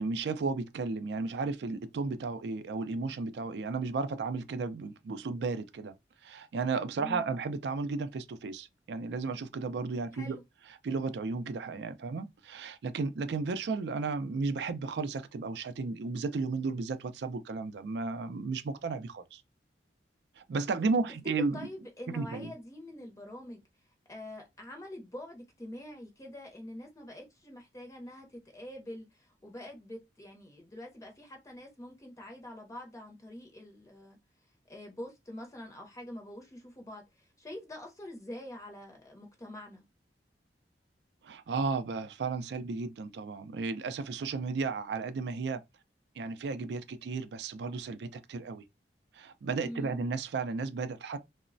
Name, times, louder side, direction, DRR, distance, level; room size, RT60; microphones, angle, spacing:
voice 1, 0.0-5.9 6.2-10.4 10.8-19.4 20.5-21.7 22.1-22.5 41.2-45.6 46.2-48.6 49.2-51.2, right 4 dB, 70° right, 0.4 m, -34 dB
voice 2, 7.0-7.3 10.1-10.4 21.4-23.6 24.1-34.2 34.7-39.8 49.6-50.0, left 1 dB, 20° left, 0.5 m, -45 dB
3.0 x 2.0 x 2.5 m
head